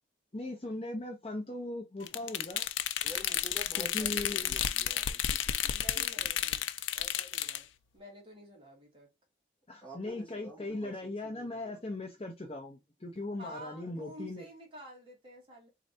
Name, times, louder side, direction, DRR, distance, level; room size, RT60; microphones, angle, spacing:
voice 1, 0.3-2.7 3.8-4.5 9.7-14.5, left 2 dB, 30° left, 0.6 m, -39 dB
sound 1, 2.1-7.6, left 10 dB, 85° left, 0.4 m, -32 dB
voice 2, 3.0-6.3 9.8-11.8, equal, 5° left, 2.4 m, -49 dB
voice 3, 5.7-6.7 6.9-7.7 7.9-9.1 13.4-15.7, equal, 25° right, 1.6 m, -50 dB
3.9 x 3.2 x 2.6 m
head